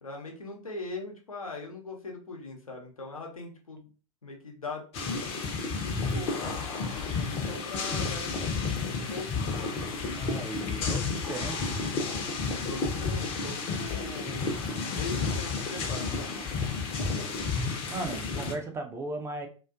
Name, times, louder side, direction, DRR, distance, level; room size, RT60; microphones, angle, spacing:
voice 1, 0.0-3.9 4.2-4.9 5.8-9.8 12.7-16.4, left 3 dB, 85° left, 0 dB, 0.7 m, -41 dB
sound 1, 4.9-18.5, left 4 dB, 35° left, 0.6 m, -31 dB
voice 2, 10.2-11.6 17.1-17.3 17.9-19.5, right 2 dB, 15° right, 4 dB, 0.4 m, -36 dB
2.4 x 2.3 x 2.4 m, 0.36 s
figure-of-eight pair, 90°, 18 cm